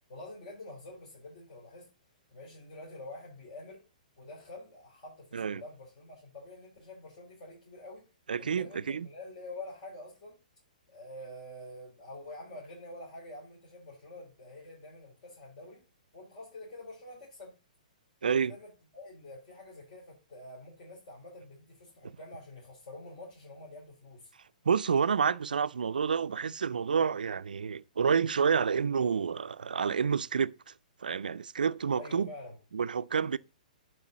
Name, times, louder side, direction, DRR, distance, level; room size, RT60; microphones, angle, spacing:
voice 1, 0.1-1.9 2.3-3.8 4.2-8.1 8.4-10.4 10.9-15.8 16.1-17.6 18.2-24.3 32.0-32.6 33.3-33.4, left 2 dB, 50° left, 3.9 m, -47 dB
voice 2, 8.3-9.1 18.2-18.6 22.0-22.1 24.7-30.5 31.0-32.3 32.7-33.4, right 6 dB, 90° right, 0.4 m, -29 dB
11.0 x 4.8 x 4.0 m
hypercardioid pair, 135°, 5 cm